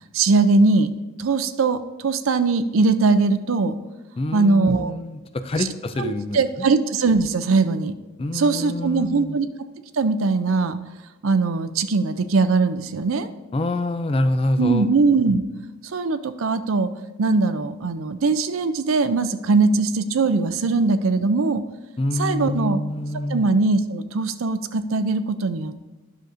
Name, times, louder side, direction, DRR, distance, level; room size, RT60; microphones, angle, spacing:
voice 1, 0.1-0.9 1.2-3.7 4.3-4.9 5.6-5.7 6.0-7.9 8.3-9.5 9.9-10.8 11.2-13.3 14.6-15.4 15.9-16.9 17.2-21.6 22.2-22.8 23.3-25.9, right 3 dB, 80° right, 11 dB, 0.5 m, -20 dB
voice 2, 4.2-6.7 8.2-9.4 13.5-14.9 22.0-23.4, left 1 dB, 25° left, 10 dB, 0.4 m, -26 dB
11.0 x 6.4 x 2.6 m, 1.1 s
head